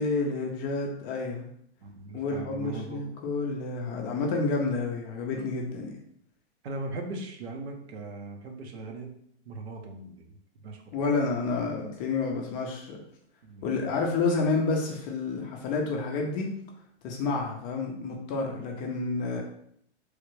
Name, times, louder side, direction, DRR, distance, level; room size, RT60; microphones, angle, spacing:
voice 1, 0.0-1.5 2.1-5.9 10.9-13.0 13.6-16.5 17.0-19.4, left 3 dB, 25° left, 0 dB, 0.5 m, -29 dB
voice 2, 1.8-3.0 6.6-9.1 9.4-10.4 10.6-11.0 13.4-13.7 19.3-19.4, right 2 dB, 65° right, 4 dB, 0.8 m, -39 dB
3.2 x 2.4 x 3.1 m, 0.68 s
hypercardioid pair, 130°, 34 cm